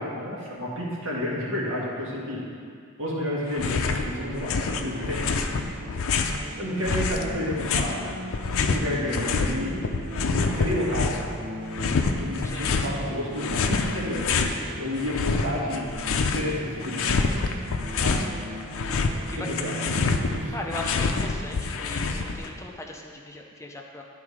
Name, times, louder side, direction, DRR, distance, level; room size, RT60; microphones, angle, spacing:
voice 1, 0.0-2.4 3.0-5.3 6.6-8.1 8.6-9.8 10.2-11.1 12.2-15.9 16.3-17.3 18.0-18.2 19.3-19.7 20.4-20.5, left 1 dB, 65° right, -4 dB, 1.7 m, -30 dB
sound 1, 3.5-4.1 4.3-6.4 6.8-9.5 9.8-11.3 11.7-12.9 13.4-14.6 15.0-16.5 16.8-18.3 18.6-22.5, left 4 dB, 65° left, 0.5 m, -26 dB
sound 2, 3.5-22.1, right 1 dB, 90° right, 0.7 m, -39 dB
voice 2, 12.4-12.8 19.3-19.9 20.5-24.0, left 2 dB, 15° left, 0 dB, 0.5 m, -38 dB
10.5 x 3.8 x 4.9 m, 2.2 s
head